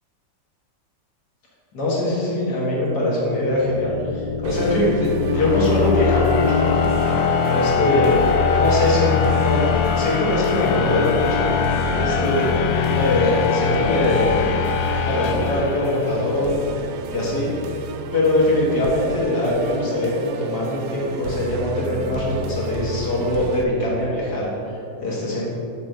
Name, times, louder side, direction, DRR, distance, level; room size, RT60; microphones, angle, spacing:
voice 1, 1.7-6.6 7.5-8.2 8.5-9.7 9.9-11.5 11.9-12.5 12.9-14.5 15.0-16.6 17.1-17.5 18.1-25.5, left 1 dB, 60° left, -5 dB, 2.3 m, -22 dB
sound 1, 3.5-16.4, left 6 dB, 85° left, 1.3 m, -22 dB
Musical instrument, 4.4-23.6, right 4 dB, 70° right, 1.0 m, -33 dB
6.4 x 5.1 x 6.7 m, 2.7 s
omnidirectional pair, 2.0 m